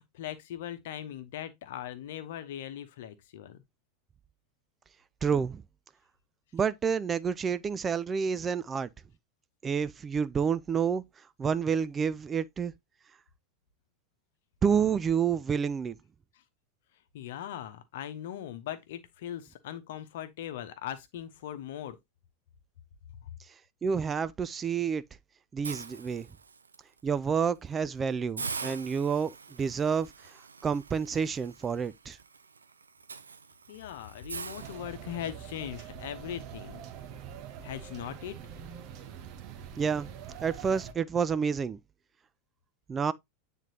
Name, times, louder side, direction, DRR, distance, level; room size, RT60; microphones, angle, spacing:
voice 1, 0.0-3.6 16.3-16.4 17.1-22.0 23.2-23.3 33.7-36.8 37.6-38.4, left 11 dB, 60° left, 0.9 m, -40 dB
voice 2, 5.2-5.6 6.5-8.9 9.6-11.0 11.4-12.7 14.6-16.0 23.8-25.0 25.5-26.3 27.0-30.1 30.6-32.2 39.8-40.1 40.4-41.8 42.9-43.1, right 6 dB, 25° right, 0.4 m, -29 dB
Hiss, 25.6-26.8 27.2-27.4 27.8-27.9 28.4-35.4, right 5 dB, 85° right, 0.5 m, -43 dB
sound 1, 34.5-40.9, right 8 dB, 45° right, 1.0 m, -44 dB
9.0 x 3.7 x 2.8 m
figure-of-eight pair, 90°, 0 cm